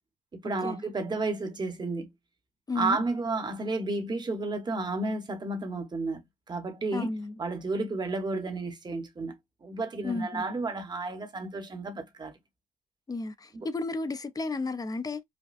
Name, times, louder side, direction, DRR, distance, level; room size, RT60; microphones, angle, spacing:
voice 1, 0.3-2.1 2.7-6.2 6.5-7.1 7.4-9.3 9.6-12.4 13.5-13.7, right 3 dB, 30° right, 1.1 m, -32 dB
voice 2, 2.7-3.0 6.9-7.3 10.0-10.4 13.1-15.2, left 3 dB, 25° left, 0.6 m, -32 dB
5.2 x 2.2 x 2.5 m
cardioid pair, 115°, 15 cm